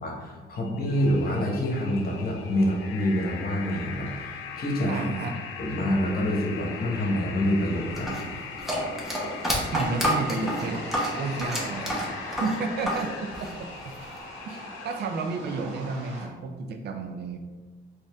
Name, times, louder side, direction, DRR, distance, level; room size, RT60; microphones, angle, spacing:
voice 1, 0.0-5.2 5.6-8.3, left 1 dB, 50° left, -1 dB, 1.1 m, -27 dB
sound 1, 0.6-15.1, left 7 dB, 80° left, 0.4 m, -40 dB
sound 2, 0.9-16.2, right 1 dB, 85° right, 1.1 m, -43 dB
voice 2, 4.9-5.4 9.7-10.9 11.2-13.9 14.8-17.4, right 4 dB, 55° right, 5 dB, 0.5 m, -32 dB
sound 3, 8.0-13.1 13.3-14.2, equal, ahead, 1.1 m, -29 dB
4.0 x 2.6 x 3.5 m, 1.3 s
cardioid pair, 90°, 20 cm